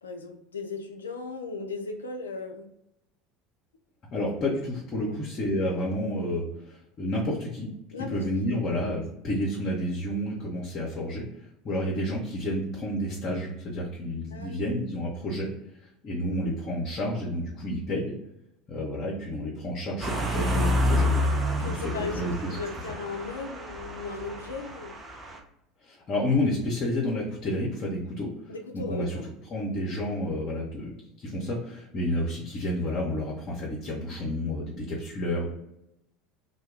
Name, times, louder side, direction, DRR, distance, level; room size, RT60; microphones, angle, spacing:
voice 1, 0.0-2.7 4.2-4.3 5.0-5.2 7.9-8.8 11.7-11.9 14.3-14.8 21.5-25.0 28.5-29.3, left 3 dB, 80° left, 4 dB, 0.4 m, -37 dB
voice 2, 4.1-7.7 8.1-11.2 11.6-15.5 16.0-18.2 18.7-21.1 21.6-22.6 25.8-29.2 29.5-30.9 31.2-35.5, left 1 dB, 40° left, -4 dB, 0.7 m, -30 dB
sound 1, 20.0-25.4, left 1 dB, 10° right, 0.6 m, -29 dB
2.2 x 2.2 x 3.2 m, 0.81 s
figure-of-eight pair, 70°, 0 cm